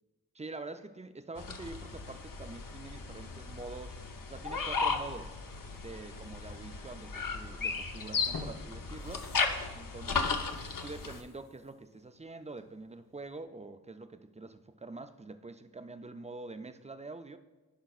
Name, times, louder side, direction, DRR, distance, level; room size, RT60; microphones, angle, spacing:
voice 1, 0.3-4.0 4.3-5.4 5.8-9.3 9.7-10.4 10.8-17.4, right 3 dB, 20° right, 0.4 m, -45 dB
sound 1, 1.4-11.2, left 4 dB, 60° left, 0.7 m, -35 dB
sound 2, 7.5-7.7 8.1-12.8 13.2-13.3, left 4 dB, 85° left, 0.9 m, -49 dB
15.5 x 5.1 x 2.4 m
wide cardioid pair, 60°, 37 cm